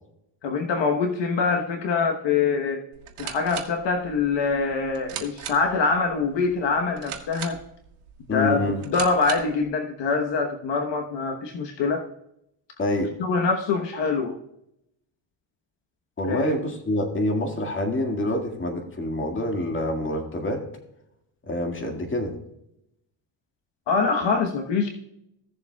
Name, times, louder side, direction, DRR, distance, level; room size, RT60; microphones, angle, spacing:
voice 1, 0.4-2.8 3.2-7.6 8.3-12.0 13.2-14.4 16.3-16.5 23.9-24.9, left 4 dB, 60° left, 4 dB, 1.2 m, -24 dB
sound 1, 2.9-9.7, right 10 dB, 80° right, 1.7 m, -39 dB
voice 2, 8.3-8.8 12.8-13.1 16.2-20.6 21.5-22.3, left 1 dB, 25° left, 3 dB, 2.0 m, -26 dB
16.5 x 7.2 x 2.3 m, 0.79 s
cardioid pair, 115°, 49 cm